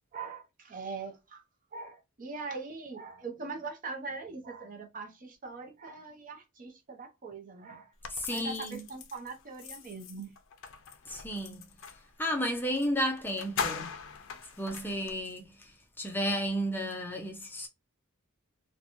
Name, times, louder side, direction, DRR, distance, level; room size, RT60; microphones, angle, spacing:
voice 1, 0.1-1.4 1.7-7.9 8.3-10.3, right 4 dB, 40° right, 0.6 m, -41 dB
sound 1, 8.0-12.1 12.8-12.9 13.2-15.2, left 6 dB, 60° left, 0.5 m, -40 dB
voice 2, 8.1-8.8 11.1-11.6 12.2-13.9 14.6-17.7, equal, 10° left, 0.5 m, -33 dB
2.9 x 2.2 x 2.5 m
head